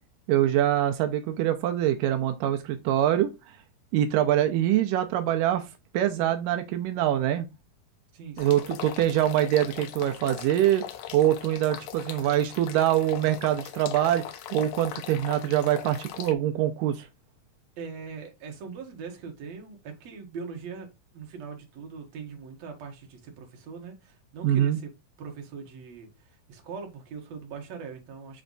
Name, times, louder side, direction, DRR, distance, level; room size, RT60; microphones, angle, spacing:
voice 1, 0.3-3.3 3.9-5.6 5.9-7.5 8.4-10.9 11.1-14.2 14.5-17.1 24.4-24.8, right 12 dB, 85° right, 2.3 m, -24 dB
voice 2, 8.1-8.5 17.8-20.9 21.1-24.9 25.2-28.4, right 5 dB, 60° right, 2.4 m, -41 dB
sound 1, 8.4-16.3, left 11 dB, 75° left, 1.7 m, -40 dB
7.3 x 3.3 x 3.9 m
omnidirectional pair, 3.9 m